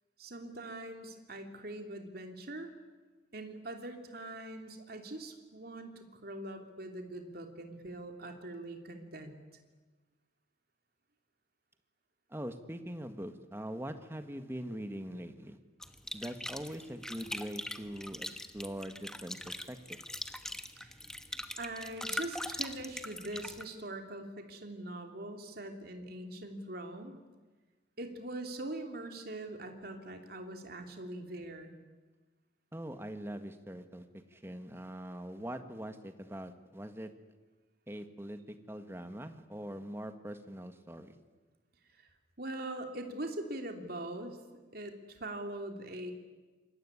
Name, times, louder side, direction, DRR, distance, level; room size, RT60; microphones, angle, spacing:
voice 1, 0.2-2.7 3.3-9.4 20.8-20.9 21.6-27.2 28.0-31.7 42.0-42.1 42.4-44.4 44.7-46.1, right 1 dB, 55° right, 4 dB, 3.1 m, -42 dB
voice 2, 12.3-15.6 16.1-18.3 18.5-19.8 32.7-37.1 37.9-41.1, equal, 15° right, 8 dB, 1.7 m, -42 dB
sound 1, 15.8-23.6, left 1 dB, 5° left, 1.3 m, -42 dB
27.0 x 22.5 x 9.8 m, 1.3 s
head